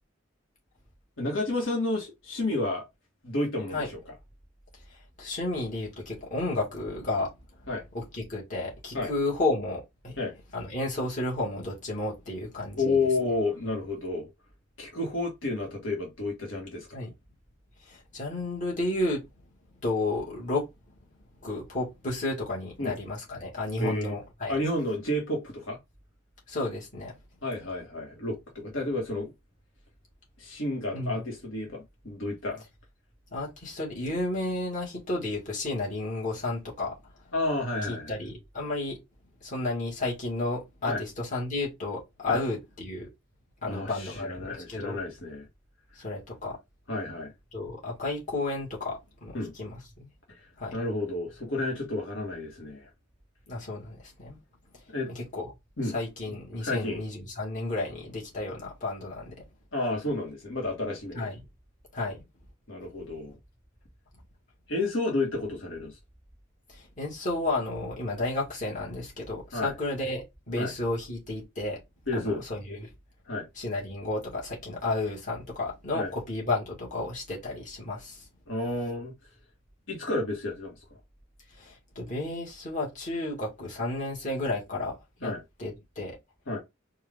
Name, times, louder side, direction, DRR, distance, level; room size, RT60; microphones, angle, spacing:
voice 1, 1.2-2.9 3.2-4.1 7.7-7.8 8.9-9.1 10.2-10.3 12.8-14.3 14.8-17.0 22.8-23.0 23.8-24.2 24.5-25.8 27.4-29.3 30.4-32.6 37.3-38.2 40.9-41.0 42.3-42.4 43.6-45.5 46.9-47.3 49.3-49.5 50.3-52.9 54.9-55.1 55.8-55.9 56.6-57.0 59.7-61.3 62.7-63.4 64.7-66.0 69.5-69.7 70.6-70.7 72.1-72.4 73.3-73.5 75.9-76.1 78.5-79.1 79.9-80.8 85.2-85.4 86.5-86.6, left 2 dB, 75° left, 1.5 m, -31 dB
voice 2, 4.9-7.3 7.6-7.7 7.9-10.2 10.5-13.0 16.9-17.1 17.9-19.2 19.8-20.7 21.4-24.6 26.5-27.1 30.9-31.2 33.3-37.0 37.9-39.0 39.4-43.1 43.6-45.0 46.0-46.6 47.5-50.1 50.6-50.8 53.5-54.4 55.1-55.5 55.8-59.4 61.2-61.4 61.9-62.2 66.7-71.8 72.1-72.8 73.6-78.3 81.6-85.3 85.6-86.2, left 2 dB, 40° left, 1.9 m, -32 dB
4.5 x 2.6 x 3.6 m
head